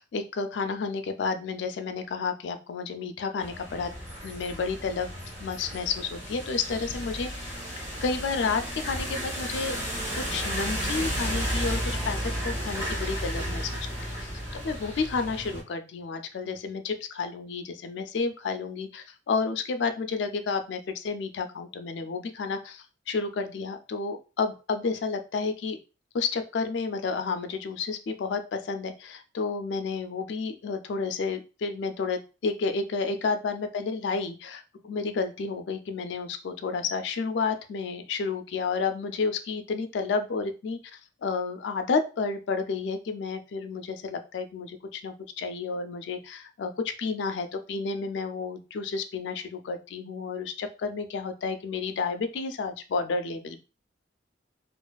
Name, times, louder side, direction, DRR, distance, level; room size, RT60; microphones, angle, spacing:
voice 1, 0.0-3.9 4.2-5.1 5.4-7.5 8.0-9.8 10.2-13.7 14.0-25.8 26.1-53.6, left 4 dB, 65° left, 8 dB, 0.3 m, -31 dB
sound 1, 3.4-15.6, equal, 15° right, 1.2 m, -33 dB
2.4 x 2.3 x 2.3 m, 0.31 s
head